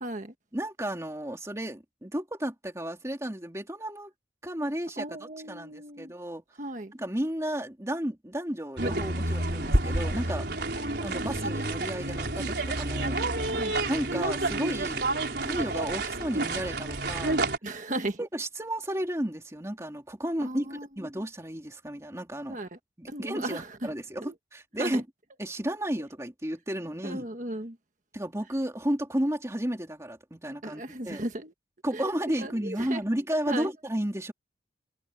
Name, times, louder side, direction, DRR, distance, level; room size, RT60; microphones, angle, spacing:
voice 1, 0.0-0.3 5.0-6.1 6.6-6.9 10.6-11.3 13.5-13.7 17.6-18.2 20.4-20.9 22.5-22.8 23.1-23.9 24.2-24.3 24.8-25.0 27.0-27.7 30.6-31.5 31.9-33.0 33.5-33.7, right 1 dB, 45° right, 1.5 m, -36 dB
voice 2, 0.5-4.1 4.4-6.4 6.9-10.5 11.0-13.2 13.9-17.4 18.2-22.6 23.0-25.0 25.4-27.3 28.1-31.2 31.8-34.3, right 1 dB, 15° right, 3.0 m, -33 dB
sound 1, 8.8-17.6, right 2 dB, 65° right, 4.6 m, -29 dB
head